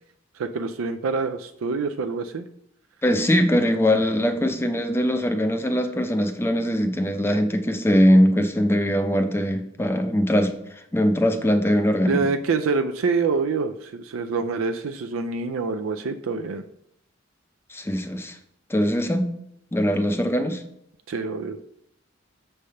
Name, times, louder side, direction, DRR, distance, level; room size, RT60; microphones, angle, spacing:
voice 1, 0.4-2.5 12.1-16.6 21.1-21.6, right 4 dB, 90° right, 7 dB, 0.4 m, -26 dB
voice 2, 3.0-10.5 10.9-12.3 17.7-18.4 18.7-19.3 19.7-20.6, equal, 10° left, 6 dB, 0.5 m, -21 dB
6.3 x 3.3 x 5.6 m, 0.75 s
head